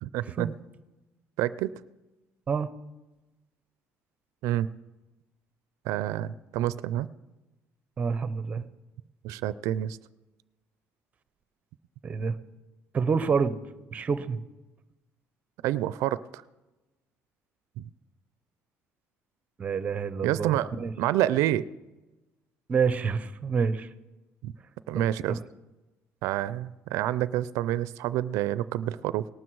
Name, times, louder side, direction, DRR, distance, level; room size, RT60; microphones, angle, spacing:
voice 1, 0.0-0.5 1.4-1.8 4.4-4.7 5.8-7.1 9.2-10.0 15.6-16.4 17.8-17.9 20.2-21.7 24.4-24.5 24.9-25.4 26.2-29.3, right 13 dB, 90° right, 17 dB, 0.4 m, -28 dB
voice 2, 8.0-8.6 12.0-12.3 12.9-13.6 13.9-14.4 19.6-20.9 22.7-23.9 25.3-25.4, right 5 dB, 25° right, 14 dB, 0.7 m, -27 dB
18.5 x 12.0 x 4.7 m, 1.1 s
cardioid pair, 155°, 5 cm